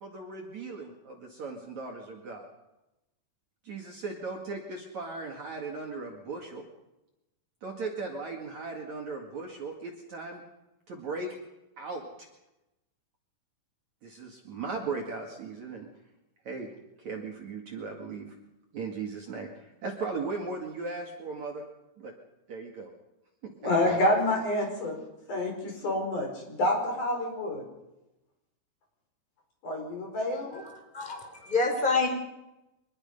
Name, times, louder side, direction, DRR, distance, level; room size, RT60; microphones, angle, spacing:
voice 1, 0.0-2.5 3.6-6.6 7.6-10.4 10.9-11.3 11.8-12.0 14.0-15.9 16.4-16.7 17.0-18.3 18.7-21.6 22.0-22.1 22.5-22.9 23.9-24.0, right 4 dB, 50° right, 0 dB, 2.9 m, -37 dB
voice 2, 23.6-24.9 25.3-27.6 29.6-30.6, left 1 dB, 45° left, 1 dB, 6.2 m, -28 dB
voice 3, 30.5-32.1, left 3 dB, 10° left, 3 dB, 3.8 m, -28 dB
24.5 x 21.0 x 5.5 m, 0.95 s
omnidirectional pair, 5.0 m